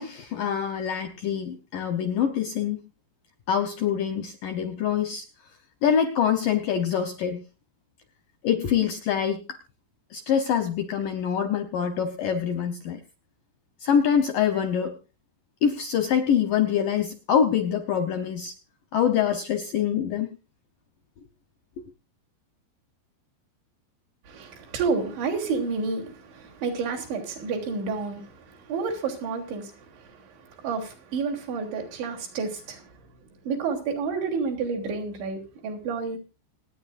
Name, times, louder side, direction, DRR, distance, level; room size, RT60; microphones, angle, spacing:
voice 1, 0.0-2.8 3.5-5.3 5.8-7.4 8.4-9.6 10.1-13.0 13.8-15.0 15.6-18.5 18.9-20.3 21.8-21.9, left 8 dB, 75° left, 2.0 m, -25 dB
voice 2, 24.3-36.2, right 4 dB, 75° right, 5.6 m, -30 dB
27.0 x 9.8 x 2.6 m
omnidirectional pair, 5.3 m